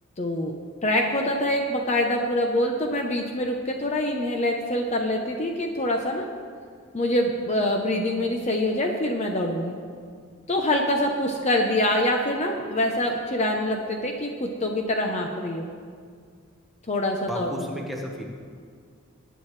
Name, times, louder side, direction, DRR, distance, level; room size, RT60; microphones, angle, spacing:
voice 1, 0.2-0.5 0.8-6.3 6.9-9.7 10.5-15.7 16.9-17.6, left 1 dB, 30° left, 2 dB, 0.7 m, -25 dB
voice 2, 17.3-18.2, equal, ahead, -1 dB, 1.3 m, -33 dB
20.5 x 9.0 x 3.3 m, 2.1 s
head